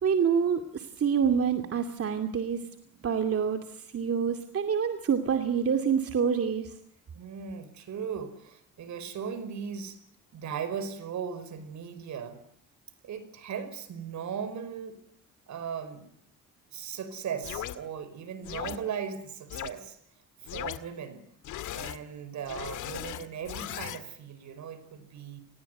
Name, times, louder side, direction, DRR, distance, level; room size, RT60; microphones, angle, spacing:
voice 1, 0.0-2.6 3.0-6.7, right 7 dB, 50° right, 6 dB, 2.6 m, -27 dB
voice 2, 7.1-10.0 10.3-12.4 13.0-15.0 15.5-16.1 16.7-20.0 20.4-21.3 21.7-25.4, right 7 dB, 70° right, 14 dB, 5.1 m, -38 dB
sound 1, 17.4-17.8 18.4-18.8 19.5-19.7 20.4-20.8 21.4-22.0 22.4-24.0, left 12 dB, 80° left, 2.0 m, -37 dB
29.5 x 22.0 x 9.2 m, 0.70 s
cardioid pair, 90°, 30 cm